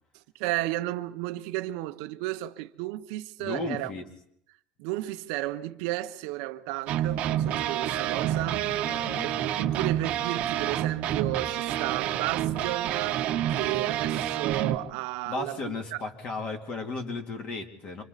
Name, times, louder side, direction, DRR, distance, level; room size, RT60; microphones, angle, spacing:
voice 1, 0.3-3.9 4.8-9.3 9.6-13.2 13.5-15.6 15.9-16.0, right 17 dB, 80° right, 0.9 m, -33 dB
voice 2, 3.4-4.1 8.8-9.3 15.2-18.0, left 3 dB, 40° left, 2.8 m, -35 dB
sound 1, 6.9-14.8, right 11 dB, 55° right, 1.2 m, -28 dB
26.5 x 26.0 x 4.1 m
cardioid pair, 135°, 3 cm